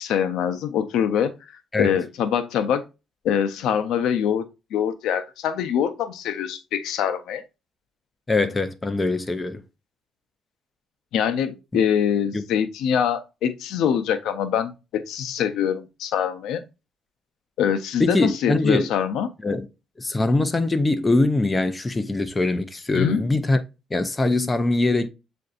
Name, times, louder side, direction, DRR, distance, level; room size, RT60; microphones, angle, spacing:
voice 1, 0.0-1.3 1.8-2.8 3.2-4.4 4.7-7.4 11.1-16.6 17.6-19.3 22.9-23.2, left 8 dB, 85° left, 0.5 m, -24 dB
voice 2, 8.3-9.6 12.3-12.4 18.0-18.9 19.4-19.7 20.0-23.6 23.9-25.1, left 2 dB, 20° left, 0.4 m, -22 dB
7.5 x 2.5 x 2.3 m
cardioid pair, 125°, 0 cm